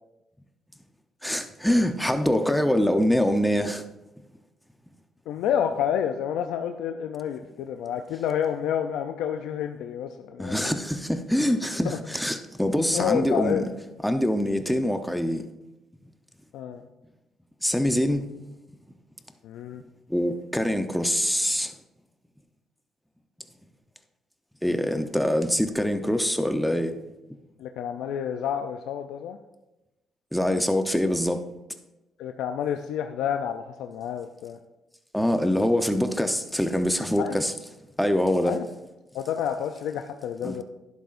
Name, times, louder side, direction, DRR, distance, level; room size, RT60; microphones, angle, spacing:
voice 1, 1.2-3.8 10.4-13.6 14.0-15.5 17.6-18.2 20.1-21.7 24.6-27.0 30.3-31.4 35.1-37.5 38.0-38.6 40.4-40.5, equal, ahead, 0.8 m, -24 dB
voice 2, 5.3-10.7 11.8-12.0 12.7-13.7 16.5-16.8 19.4-19.8 27.6-29.4 32.2-34.6 37.2-37.4 38.4-38.7 39.1-40.6, left 9 dB, 90° left, 0.5 m, -29 dB
11.5 x 11.0 x 2.6 m
cardioid pair, 90°, 0 cm